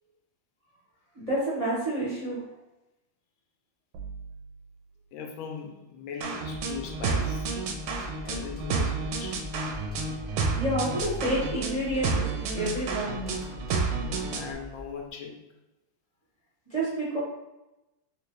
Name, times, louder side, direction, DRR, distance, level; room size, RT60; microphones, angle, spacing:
voice 1, 1.1-2.4 10.5-13.4 16.7-17.2, right 1 dB, 25° right, -8 dB, 0.8 m, -29 dB
sound 1, 3.9-5.0 6.4-7.4 8.2-9.3 11.0-12.4, equal, 75° right, 1.2 m, -44 dB
voice 2, 5.1-7.5 8.2-9.4 13.9-15.4, left 6 dB, 85° left, 2 dB, 1.4 m, -39 dB
sound 2, 6.2-14.5, right 4 dB, 90° right, 1.4 m, -31 dB
Computer keyboard, 6.5-15.1, left 2 dB, 10° left, 0.4 m, -42 dB
3.4 x 2.9 x 3.2 m, 0.97 s
omnidirectional pair, 2.2 m